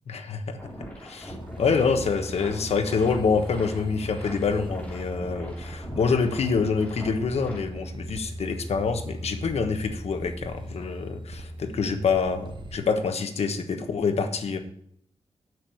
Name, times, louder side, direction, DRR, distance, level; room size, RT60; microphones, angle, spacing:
voice 1, 0.1-0.6 1.0-14.6, left 5 dB, 85° left, 7 dB, 1.3 m, -26 dB
sound 1, 0.6-7.6, equal, 10° left, 3.0 m, -42 dB
sound 2, 1.3-12.8, right 1 dB, 50° right, 1.0 m, -39 dB
7.5 x 6.4 x 7.9 m, 0.67 s
wide cardioid pair, 135°, 11 cm